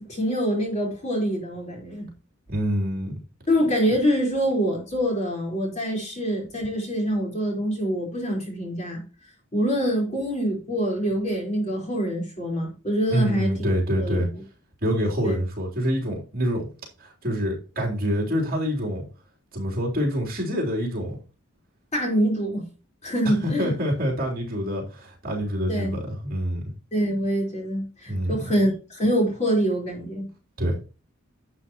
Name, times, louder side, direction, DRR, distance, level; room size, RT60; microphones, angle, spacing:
voice 1, 0.1-2.1 3.5-9.0 9.5-13.5 14.0-14.3 15.2-15.4 21.9-22.7 23.0-23.7 25.7-26.0 26.9-30.3, equal, 35° left, 4.5 m, -25 dB
voice 2, 2.5-3.1 13.1-14.3 14.8-16.7 17.0-19.0 19.5-21.2 23.4-26.6 28.1-28.4 30.6-30.8, equal, 45° right, 3.6 m, -26 dB
11.5 x 8.5 x 3.1 m
head